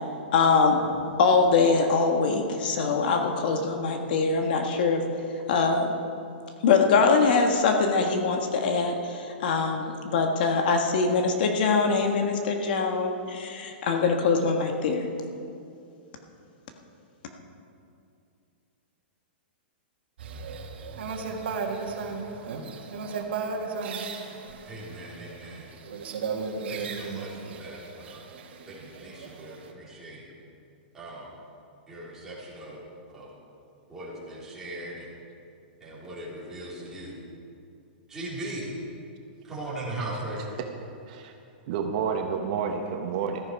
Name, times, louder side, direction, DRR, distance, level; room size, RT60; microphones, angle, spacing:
voice 1, 0.3-0.8 1.2-5.1 5.5-5.9 6.6-15.1, left 4 dB, 55° left, 3 dB, 1.5 m, -23 dB
sound 1, 20.2-29.7, right 4 dB, 70° right, 2.0 m, -35 dB
voice 2, 24.6-25.7 26.7-28.2 28.7-30.2 30.9-31.3 31.9-32.8 33.1-33.3 33.9-35.1 35.8-37.2 38.1-38.7 39.5-40.4, right 1 dB, 10° right, -8 dB, 3.9 m, -39 dB
voice 3, 41.7-43.4, right 6 dB, 45° right, 3 dB, 1.1 m, -29 dB
15.5 x 14.0 x 4.8 m, 2.5 s
supercardioid pair, 165°, 6 cm